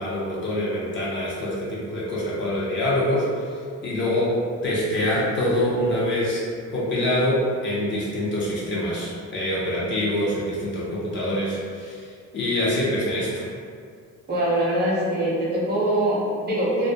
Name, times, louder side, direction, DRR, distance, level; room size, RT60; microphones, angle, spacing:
voice 1, 0.0-6.4 6.7-13.5, left 1 dB, 40° left, -6 dB, 0.5 m, -25 dB
voice 2, 14.3-16.9, right 1 dB, 35° right, -6 dB, 0.5 m, -23 dB
2.3 x 2.1 x 2.6 m, 2.2 s
cardioid pair, 175°, 29 cm